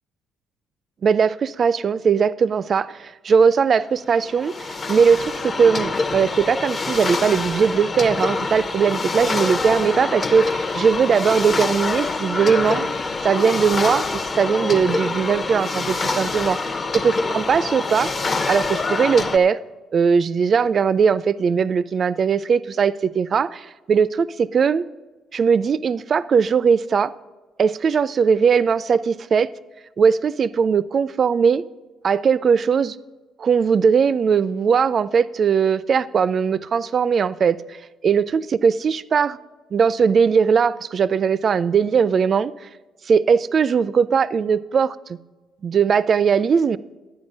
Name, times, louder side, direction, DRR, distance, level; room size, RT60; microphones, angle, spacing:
voice 1, 1.0-12.9 13.2-16.6 17.0-18.1 18.5-19.6 19.9-24.9 25.3-27.1 27.6-29.5 30.0-31.6 32.0-33.0 33.4-37.8 38.0-39.4 39.7-42.5 43.1-45.2 45.6-46.8, right 6 dB, 40° right, 0.4 m, -19 dB
sound 1, 4.2-19.4, left 3 dB, 30° left, 0.7 m, -25 dB
11.5 x 9.2 x 5.3 m
cardioid pair, 125°, 0 cm